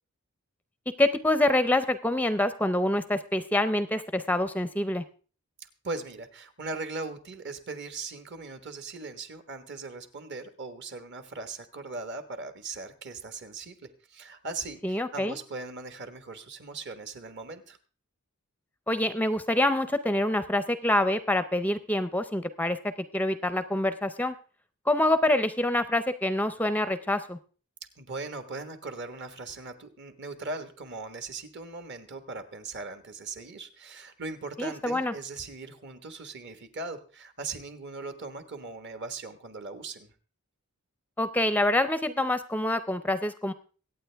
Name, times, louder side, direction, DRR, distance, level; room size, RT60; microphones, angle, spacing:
voice 1, 1.0-5.0 14.8-15.4 18.9-24.3 24.9-27.4 34.6-35.1 41.2-43.5, left 1 dB, 5° left, 12 dB, 0.5 m, -26 dB
voice 2, 5.8-17.8 28.0-40.1, right 3 dB, 55° right, 9 dB, 1.4 m, -39 dB
23.5 x 8.8 x 3.4 m, 0.38 s
head